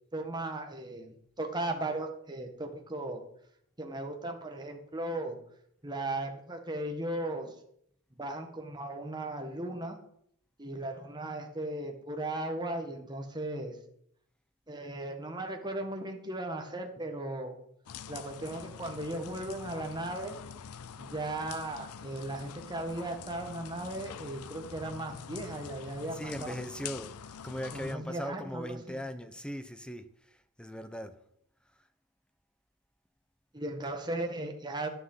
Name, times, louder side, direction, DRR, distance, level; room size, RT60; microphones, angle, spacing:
voice 1, 0.1-3.2 3.8-5.4 5.8-7.5 8.2-10.0 10.6-13.8 14.7-17.6 18.1-20.4 21.0-26.5 27.7-29.0 33.5-34.9, right 1 dB, 20° right, 1.8 m, -37 dB
sound 1, 17.9-28.0, left 7 dB, 80° left, 0.6 m, -45 dB
voice 2, 26.1-27.2 27.4-31.1, equal, 5° left, 0.9 m, -39 dB
11.5 x 10.0 x 5.7 m
head